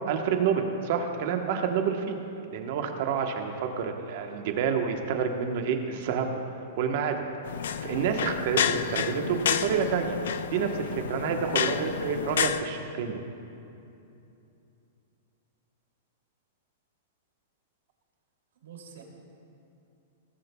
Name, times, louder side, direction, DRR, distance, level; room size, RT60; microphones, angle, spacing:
voice 1, 0.1-2.2 2.5-6.4 6.8-7.2 7.8-10.2 10.5-13.2, right 6 dB, 45° right, 4 dB, 1.0 m, -28 dB
sound 1, 7.4-12.6, left 8 dB, 75° left, 0.5 m, -30 dB
voice 2, 11.3-11.8 18.6-19.0, right 6 dB, 85° right, 0 dB, 2.7 m, -47 dB
18.0 x 13.5 x 2.3 m, 2.7 s
supercardioid pair, 170°, 0 cm